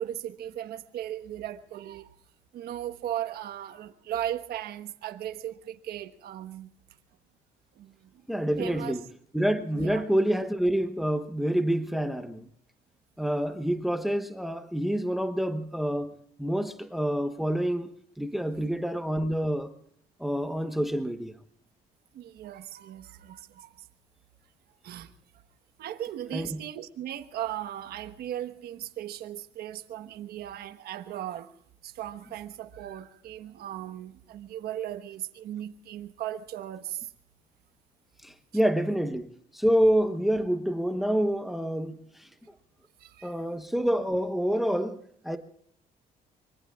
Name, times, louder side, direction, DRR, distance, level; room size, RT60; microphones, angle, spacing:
voice 1, 0.0-2.1 2.5-6.7 7.8-8.2 8.6-8.9 9.7-10.0 22.1-23.9 24.8-25.1 25.8-31.5 31.8-37.1 43.0-43.4, right 11 dB, 70° right, 1.3 m, -37 dB
voice 2, 8.3-9.0 9.3-12.5 13.2-17.9 18.2-19.7 20.2-21.3 26.3-26.6 38.2-39.3 39.5-42.3 43.2-45.0 45.2-45.4, equal, ahead, 1.1 m, -27 dB
25.0 x 22.5 x 2.4 m
cardioid pair, 110°, 17 cm